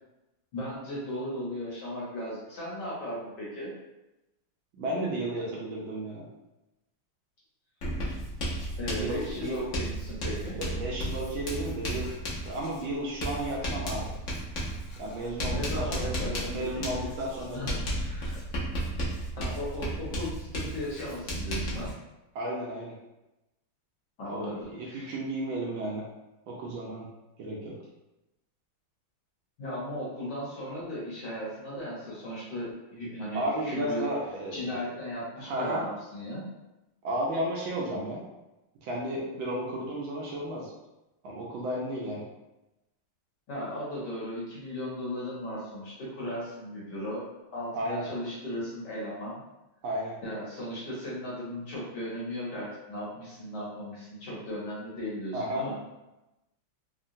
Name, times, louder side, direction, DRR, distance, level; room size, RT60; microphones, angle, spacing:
voice 1, 0.5-3.7 8.8-10.5 15.5-16.8 17.5-17.7 18.0-18.4 19.4-22.0 24.2-25.1 29.6-34.1 34.5-36.5 43.5-47.3 47.5-49.4 50.2-55.7, left 1 dB, 60° left, -6 dB, 1.3 m, -36 dB
voice 2, 4.7-6.3 9.0-9.7 10.5-12.1 12.4-14.1 15.0-17.8 22.3-22.9 24.3-26.1 26.5-27.1 27.4-27.7 33.3-34.9 35.4-35.8 37.0-38.2 38.8-40.7 41.2-42.2 47.7-48.1 49.8-50.2 55.3-55.7, right 1 dB, 75° right, -3 dB, 1.3 m, -33 dB
Writing, 7.8-21.9, right 1 dB, 80° left, 0.7 m, -34 dB
3.6 x 2.1 x 2.6 m, 0.98 s
omnidirectional pair, 2.4 m